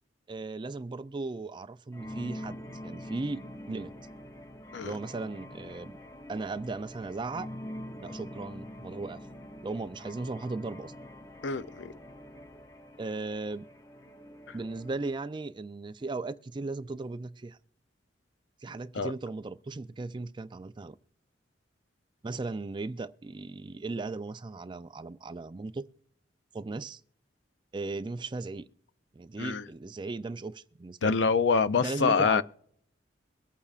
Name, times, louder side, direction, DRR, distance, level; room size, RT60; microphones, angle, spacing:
voice 1, 0.3-3.9 4.8-6.0 6.3-7.5 8.0-9.2 9.6-10.9 13.0-13.7 14.5-17.6 18.6-21.0 22.2-25.9 26.5-27.0 27.7-28.7 29.2-31.2 31.8-32.4, right 3 dB, 25° right, 0.4 m, -37 dB
sound 1, 1.9-15.2, left 1 dB, 20° left, 0.8 m, -45 dB
voice 2, 11.4-11.9 14.5-14.6 18.9-19.1 29.4-29.6 31.0-32.4, left 5 dB, 80° left, 0.5 m, -26 dB
23.0 x 8.5 x 2.4 m
head